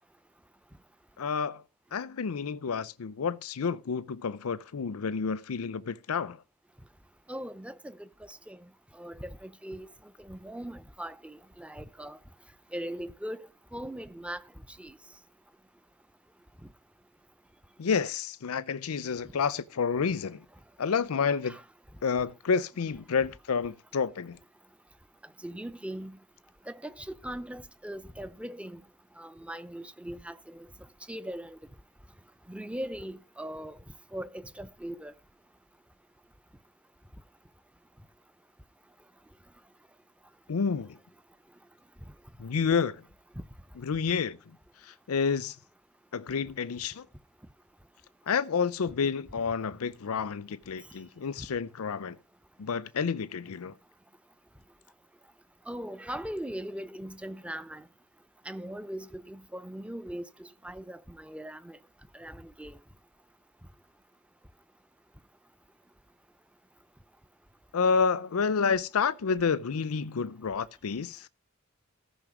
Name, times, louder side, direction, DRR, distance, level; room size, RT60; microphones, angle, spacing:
voice 1, 1.2-1.6 1.9-6.4 17.8-20.4 20.8-21.6 22.0-24.4 40.5-41.0 42.4-43.0 43.8-44.4 44.8-45.6 46.1-47.1 48.3-52.2 52.6-53.7 67.7-71.3, left 5 dB, 85° left, 0.5 m, -29 dB
voice 2, 7.3-8.6 9.0-9.9 10.2-12.2 12.7-14.4 14.8-14.9 21.4-21.6 25.4-26.2 26.7-28.8 29.2-30.7 31.1-31.6 32.5-33.8 34.1-35.1 55.7-57.8 58.5-61.8 62.1-62.7, right 1 dB, 5° right, 0.6 m, -40 dB
14.5 x 5.6 x 6.0 m
head